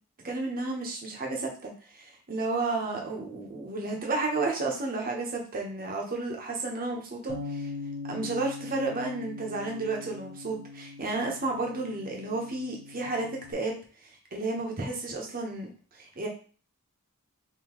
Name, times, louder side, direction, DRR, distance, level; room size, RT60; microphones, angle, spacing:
voice 1, 0.2-7.7 8.1-13.8 14.3-15.7 16.0-16.3, right 3 dB, 40° right, 0 dB, 0.9 m, -32 dB
Bass guitar, 7.3-13.5, left 3 dB, 65° right, 1.1 m, -41 dB
3.7 x 2.8 x 3.0 m, 0.39 s
head